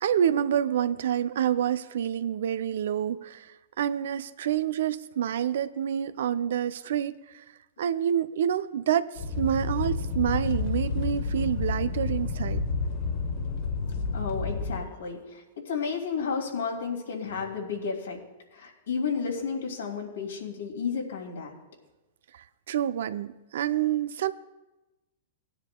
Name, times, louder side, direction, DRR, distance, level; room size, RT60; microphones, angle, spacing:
voice 1, 0.0-7.4 7.8-12.6 22.3-24.3, right 10 dB, 70° right, 14 dB, 0.5 m, -28 dB
sound 1, 9.2-14.8, left 4 dB, 60° left, 1.0 m, -30 dB
voice 2, 14.1-18.2 18.5-21.5, left 5 dB, 80° left, 0 dB, 2.7 m, -32 dB
19.0 x 10.0 x 2.3 m, 1.0 s
hypercardioid pair, 110°, 0 cm